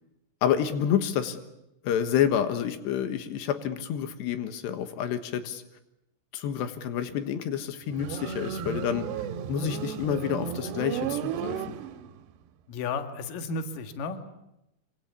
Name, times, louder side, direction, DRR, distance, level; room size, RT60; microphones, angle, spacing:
voice 1, 0.4-1.4 1.8-5.6 6.3-11.8, left 9 dB, 90° left, 9 dB, 3.6 m, -29 dB
Motorcycle, 7.9-12.3, right 8 dB, 85° right, 3.3 m, -34 dB
voice 2, 12.7-14.2, left 4 dB, 60° left, 8 dB, 3.2 m, -33 dB
26.0 x 25.0 x 8.3 m, 0.87 s
omnidirectional pair, 4.8 m